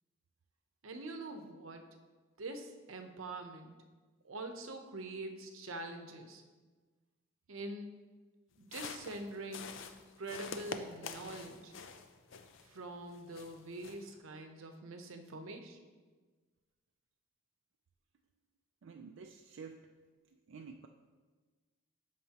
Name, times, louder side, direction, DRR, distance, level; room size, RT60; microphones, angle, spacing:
voice 1, 0.8-2.0 2.4-3.7 4.2-6.4 7.5-7.9 8.6-9.8 10.2-11.7 12.6-15.9, right 2 dB, 85° right, 6 dB, 0.8 m, -44 dB
sound 1, 8.6-12.8 13.1-14.1, left 5 dB, 70° left, 0.5 m, -46 dB
voice 2, 18.8-19.9 20.3-20.9, right 5 dB, 70° right, 4 dB, 0.4 m, -50 dB
13.5 x 5.2 x 2.9 m, 1.4 s
head